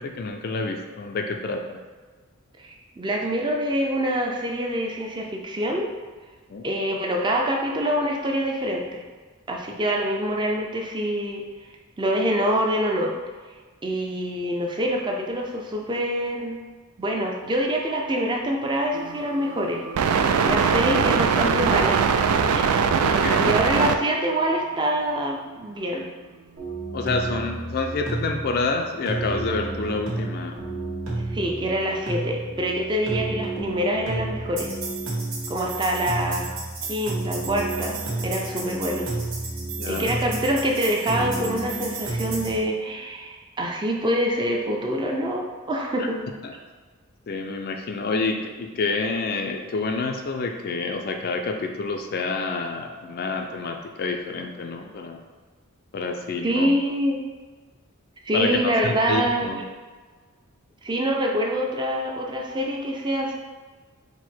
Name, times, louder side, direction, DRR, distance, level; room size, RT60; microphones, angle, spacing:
voice 1, 0.0-1.8 6.5-6.6 23.0-23.6 26.9-30.7 39.7-40.1 46.4-46.5 47.3-55.2 55.9-56.7 58.3-59.7, left 3 dB, 45° left, 4 dB, 0.4 m, -28 dB
voice 2, 2.6-5.9 6.6-9.0 9.5-11.4 12.0-13.1 13.8-16.6 17.0-22.1 22.5-26.1 31.3-34.7 35.5-36.5 36.9-39.1 39.9-46.2 56.4-57.2 58.3-59.5 60.8-63.3, equal, 20° right, 0 dB, 0.5 m, -25 dB
sound 1, 18.9-23.9, right 6 dB, 90° right, 0.3 m, -21 dB
sound 2, 26.6-42.6, right 2 dB, 65° right, 1.2 m, -31 dB
4.6 x 2.1 x 4.3 m, 1.4 s
head